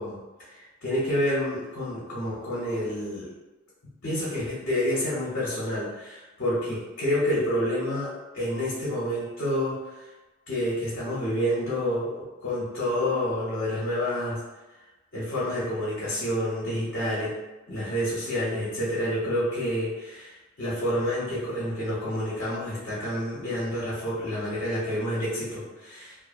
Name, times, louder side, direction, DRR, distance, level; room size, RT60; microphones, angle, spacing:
voice 1, 0.0-3.3 4.0-10.1 10.5-14.4 15.1-17.3 17.7-26.2, equal, 55° left, -9 dB, 0.8 m, -29 dB
2.5 x 2.0 x 2.5 m, 1.1 s
head